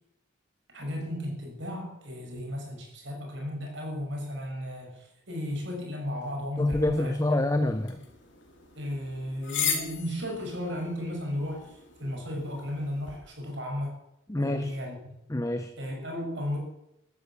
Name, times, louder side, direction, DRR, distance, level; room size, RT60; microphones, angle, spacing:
voice 1, 0.7-7.2 8.7-14.0 14.3-15.1 15.8-16.6, left 1 dB, 60° right, 1 dB, 6.3 m, -34 dB
voice 2, 6.6-8.0 14.3-14.7 15.3-15.7, left 1 dB, 15° left, 9 dB, 0.8 m, -27 dB
sound 1, 6.7-13.2, left 7 dB, 65° left, 3.7 m, -38 dB
13.5 x 12.0 x 8.3 m, 0.84 s
head